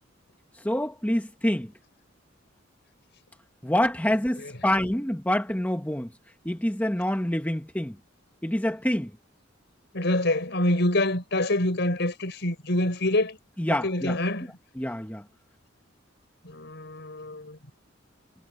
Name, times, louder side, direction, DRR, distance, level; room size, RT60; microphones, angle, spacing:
voice 1, 0.6-1.7 3.6-6.1 6.4-7.9 8.4-9.1 13.6-14.2 14.8-15.2, left 1 dB, 10° left, 1.4 m, -26 dB
voice 2, 9.9-13.4 13.7-14.5 16.4-17.6, left 1 dB, 60° left, 5.3 m, -26 dB
head